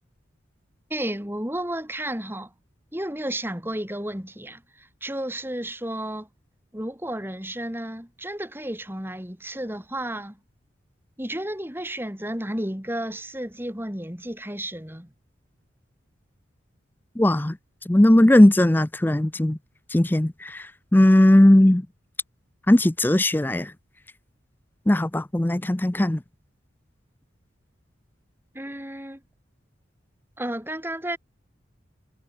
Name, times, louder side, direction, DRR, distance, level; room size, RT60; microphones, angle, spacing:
voice 1, 0.9-2.5 2.9-6.3 6.7-10.4 11.2-15.1 28.5-29.2 30.4-31.2, right 1 dB, 10° right, 3.3 m, -32 dB
voice 2, 17.2-17.6 17.9-19.6 19.9-21.9 22.7-23.7 24.9-26.2, left 1 dB, 10° left, 0.4 m, -18 dB
head